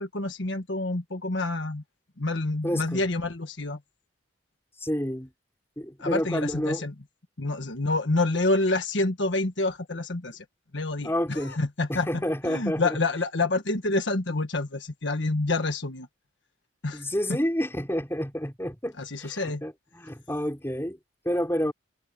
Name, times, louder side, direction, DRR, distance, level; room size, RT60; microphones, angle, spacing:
voice 1, 0.0-1.8 2.2-3.8 6.0-6.9 7.4-10.4 10.7-16.1 16.8-17.0 17.3-17.4 19.0-19.6, left 2 dB, 65° left, 1.5 m, -28 dB
voice 2, 2.6-3.0 4.8-5.3 5.8-6.9 11.0-11.6 11.9-13.0 16.9-21.0 21.2-21.7, equal, 10° left, 4.4 m, -29 dB
head